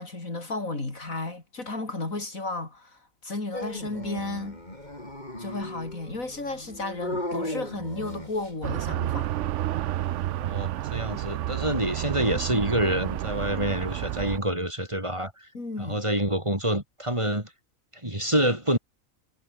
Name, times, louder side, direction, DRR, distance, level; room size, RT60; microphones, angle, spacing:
voice 1, 0.0-4.6 5.4-9.4 15.5-16.0, left 2 dB, 70° left, 5.0 m, -33 dB
Dog, 3.5-8.6, left 1 dB, 30° left, 6.4 m, -36 dB
sound 1, 8.6-14.4, right 13 dB, 65° right, 0.8 m, -30 dB
voice 2, 10.4-15.5 15.8-17.5 17.9-18.8, right 1 dB, 20° right, 4.0 m, -27 dB
omnidirectional pair, 1.4 m